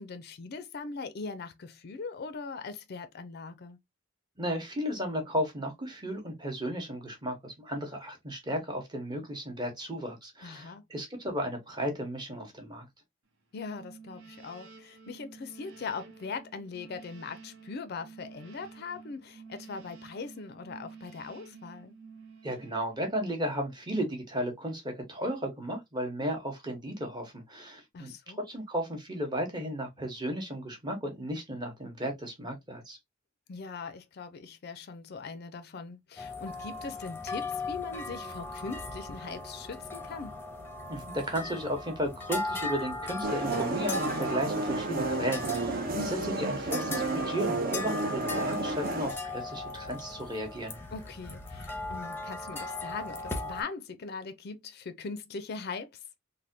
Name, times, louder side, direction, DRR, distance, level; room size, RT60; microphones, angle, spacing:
voice 1, 0.0-3.8 10.4-10.8 13.5-22.0 27.9-28.4 33.5-40.3 45.9-46.4 50.9-56.0, left 4 dB, 50° left, 0.4 m, -40 dB
voice 2, 4.4-12.8 22.4-28.1 28.5-33.0 40.9-45.9 46.5-50.8, equal, 20° right, 0.9 m, -34 dB
sound 1, 13.6-23.5, right 5 dB, 90° right, 0.8 m, -51 dB
sound 2, 36.2-53.6, left 3 dB, 10° left, 0.6 m, -38 dB
sound 3, 43.2-49.1, right 2 dB, 45° right, 0.5 m, -31 dB
3.3 x 2.2 x 2.6 m
head